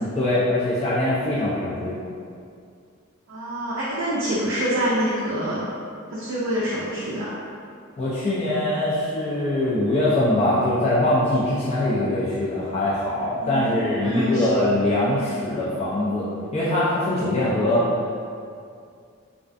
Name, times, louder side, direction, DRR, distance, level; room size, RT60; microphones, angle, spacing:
voice 1, 0.0-1.9 8.0-17.9, left 1 dB, 30° left, -9 dB, 0.3 m, -22 dB
voice 2, 3.3-5.6 6.1-7.4 13.4-14.5, equal, 60° right, -7 dB, 0.4 m, -26 dB
2.3 x 2.2 x 2.4 m, 2.3 s
head